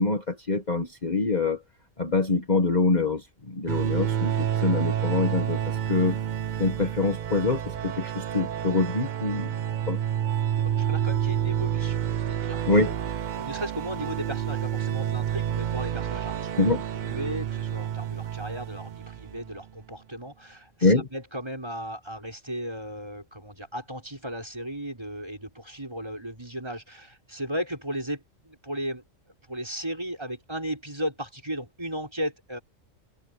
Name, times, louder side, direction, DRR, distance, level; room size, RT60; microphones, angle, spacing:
voice 1, 0.0-1.6 2.0-6.2 6.6-9.5 9.9-10.0 12.7-12.9 16.6-16.8 20.8-21.1, left 3 dB, 35° left, 1.8 m, -25 dB
sound 1, 3.7-19.6, right 10 dB, 55° right, 0.5 m, -29 dB
voice 2, 10.6-12.9 13.4-16.5 17.0-29.0 29.5-32.6, equal, 20° right, 5.9 m, -35 dB
omnidirectional pair, 1.3 m